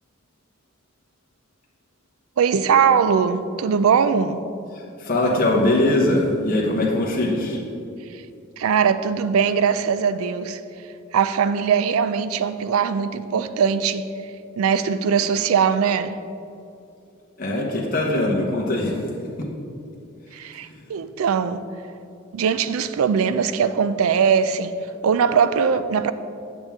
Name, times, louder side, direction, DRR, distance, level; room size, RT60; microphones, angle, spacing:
voice 1, 2.4-4.4 8.6-10.6 11.1-14.1 14.6-16.1 20.3-21.6 22.3-24.7 25.0-26.1, right 6 dB, 90° right, 0.4 m, -20 dB
voice 2, 4.7-7.6 17.4-19.0 19.4-19.5 20.4-20.8, left 1 dB, 45° left, 1.0 m, -22 dB
8.0 x 7.1 x 3.5 m
head